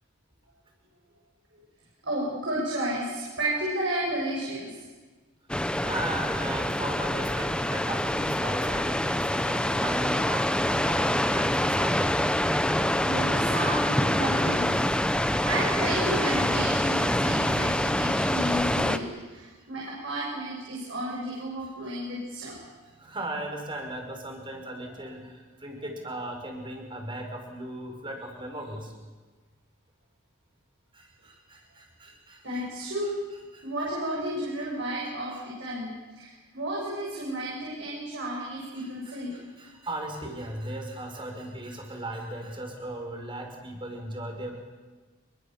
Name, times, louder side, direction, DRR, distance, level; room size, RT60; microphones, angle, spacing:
voice 1, 2.0-4.8 10.1-10.2 13.0-14.7 15.4-22.5 32.4-33.2 33.6-39.3, right 1 dB, 60° right, -5 dB, 7.5 m, -32 dB
sound 1, 5.5-19.0, left 1 dB, 5° left, 0.9 m, -26 dB
voice 2, 5.8-12.0 22.8-28.9 30.9-32.6 33.5-33.7 35.3-35.4 38.8-44.5, right 1 dB, 25° right, 2 dB, 5.3 m, -37 dB
27.0 x 23.5 x 7.4 m, 1.3 s
head